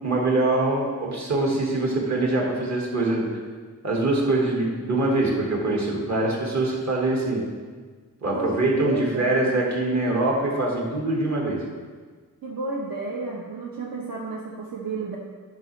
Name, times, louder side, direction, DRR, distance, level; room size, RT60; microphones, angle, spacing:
voice 1, 0.0-3.2 3.8-7.4 8.2-11.6, right 2 dB, 45° right, -2 dB, 1.6 m, -23 dB
voice 2, 8.3-9.6 12.4-15.2, right 3 dB, 65° right, -4 dB, 1.0 m, -32 dB
11.5 x 6.0 x 3.1 m, 1.5 s
wide cardioid pair, 165°, 38 cm